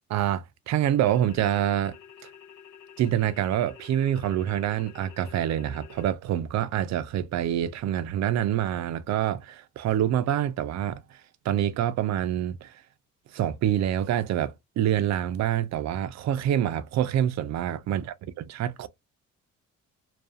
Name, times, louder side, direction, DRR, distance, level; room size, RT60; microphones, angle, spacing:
voice 1, 0.1-2.0 3.0-12.8 13.3-18.9, right 11 dB, 65° right, 0.5 m, -26 dB
sound 1, 1.1-6.1, left 8 dB, 75° left, 0.6 m, -49 dB
2.4 x 2.3 x 2.6 m
cardioid pair, 90°, 30 cm